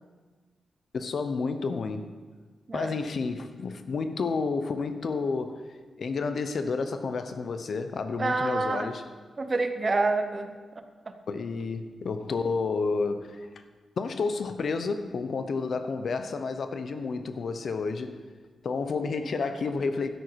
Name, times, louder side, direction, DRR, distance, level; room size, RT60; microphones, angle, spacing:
voice 1, 0.9-2.1 2.7-5.6 6.0-9.0 11.3-13.5 14.0-18.2 18.6-20.1, left 4 dB, 55° left, 0.7 m, -30 dB
voice 2, 8.2-8.9 9.4-10.8 18.9-19.0, right 3 dB, 30° right, 0.7 m, -28 dB
12.5 x 10.0 x 4.6 m
wide cardioid pair, 160°, 0 cm